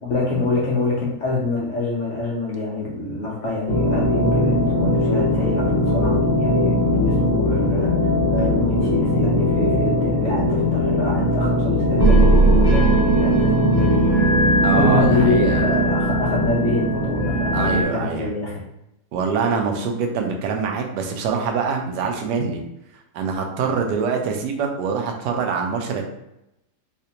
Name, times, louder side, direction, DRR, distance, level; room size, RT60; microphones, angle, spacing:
voice 1, 0.0-8.0 8.3-14.3 14.7-18.6, left 3 dB, 55° left, -4 dB, 0.9 m, -25 dB
sound 1, 3.7-17.8, equal, 30° right, 0.9 m, -19 dB
voice 2, 14.6-15.8 17.5-18.3 19.1-22.6 23.1-26.0, right 5 dB, 80° right, 2 dB, 1.2 m, -24 dB
4.1 x 2.4 x 2.8 m, 0.86 s
omnidirectional pair, 1.8 m